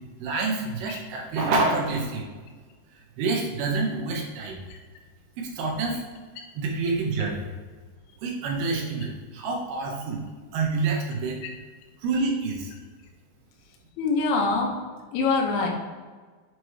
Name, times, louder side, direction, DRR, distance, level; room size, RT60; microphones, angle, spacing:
voice 1, 0.2-2.3 3.2-4.6 5.4-6.0 6.6-7.4 8.2-10.2 10.5-11.4 12.0-12.7, right 3 dB, 75° right, 0 dB, 2.4 m, -27 dB
voice 2, 14.0-14.7 15.1-15.7, left 3 dB, 75° left, -1 dB, 2.3 m, -23 dB
7.7 x 2.9 x 4.8 m, 1.4 s
omnidirectional pair, 5.6 m